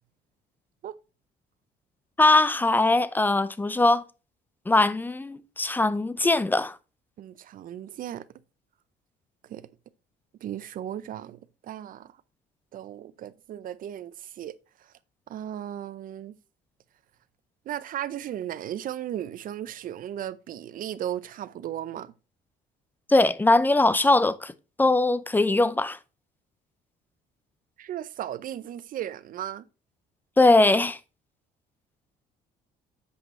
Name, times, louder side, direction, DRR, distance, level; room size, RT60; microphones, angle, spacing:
voice 1, 2.2-4.0 4.7-6.8 23.1-24.5 24.8-26.0 30.4-31.0, left 2 dB, 10° left, 0.6 m, -21 dB
voice 2, 7.2-8.3 9.5-9.7 10.4-12.1 12.7-14.9 15.3-16.4 17.7-22.1 27.8-29.7, right 11 dB, 55° right, 0.6 m, -36 dB
8.2 x 5.3 x 4.3 m
cardioid pair, 110°, 17 cm